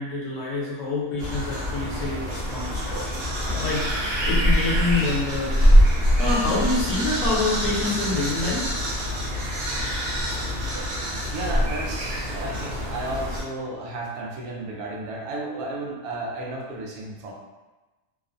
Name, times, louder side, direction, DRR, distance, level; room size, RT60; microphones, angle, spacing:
voice 1, 0.0-3.3 3.6-5.8 6.2-8.7, left 3 dB, 65° left, -5 dB, 1.0 m, -27 dB
sound 1, 1.2-13.4, equal, 60° right, 0.6 m, -24 dB
voice 2, 11.3-17.3, right 2 dB, 85° right, -2 dB, 1.1 m, -33 dB
2.9 x 2.0 x 2.5 m, 1.1 s
omnidirectional pair, 1.5 m